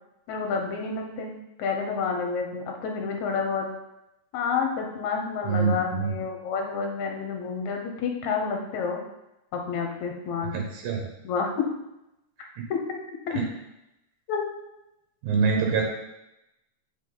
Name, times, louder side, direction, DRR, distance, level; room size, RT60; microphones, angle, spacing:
voice 1, 0.3-3.7 4.3-9.0 9.5-10.5 11.2-11.7 12.7-13.0 13.3-13.4 14.3-14.4, left 5 dB, 75° left, 2 dB, 2.3 m, -29 dB
voice 2, 5.5-6.2 10.5-11.1 13.3-13.5 15.2-15.8, right 5 dB, 85° right, 0 dB, 2.5 m, -25 dB
8.1 x 4.9 x 3.9 m, 0.90 s
omnidirectional pair, 3.4 m